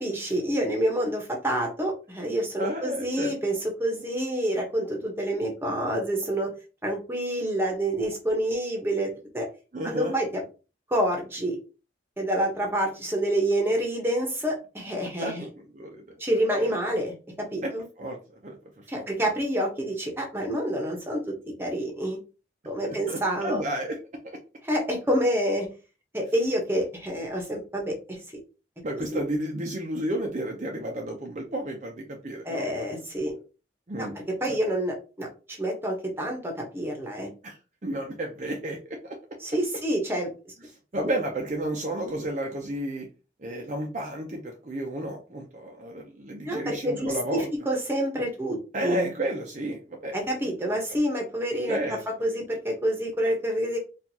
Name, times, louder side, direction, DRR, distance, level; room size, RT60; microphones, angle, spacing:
voice 1, 0.0-6.5 6.8-9.5 9.8-10.4 10.9-11.6 12.2-15.5 16.2-17.8 18.9-22.2 22.6-23.6 24.6-25.7 26.1-28.2 29.1-29.2 32.4-33.3 34.0-37.3 39.4-40.3 41.0-41.1 46.4-48.6 48.8-49.1 50.1-53.8, right 1 dB, 15° right, 1 dB, 0.9 m, -28 dB
voice 2, 2.6-3.3 9.7-10.1 15.2-16.1 16.6-16.8 17.6-18.2 18.4-19.0 22.8-24.0 24.2-24.4 28.8-32.9 33.9-34.2 34.4-34.6 37.4-39.2 40.9-43.1 43.4-47.5 48.7-50.3 50.6-51.0 51.7-52.0, right 1 dB, 40° right, 1 dB, 0.6 m, -32 dB
4.4 x 2.5 x 2.7 m, 0.33 s
head